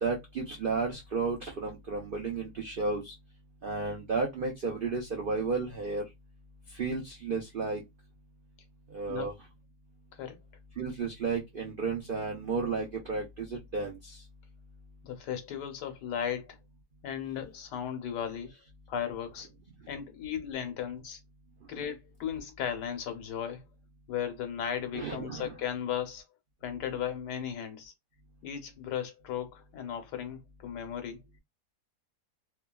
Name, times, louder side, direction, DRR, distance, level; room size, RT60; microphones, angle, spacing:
voice 1, 0.0-3.1 3.6-6.1 6.7-7.8 8.9-9.3 10.8-14.2 24.9-25.5, right 4 dB, 85° right, 0.4 m, -33 dB
voice 2, 15.0-16.6 17.0-18.5 18.9-19.5 19.9-21.2 21.7-23.6 24.1-26.2 26.6-27.9 28.4-31.2, left 9 dB, 85° left, 1.4 m, -36 dB
3.0 x 2.3 x 2.2 m
omnidirectional pair, 1.8 m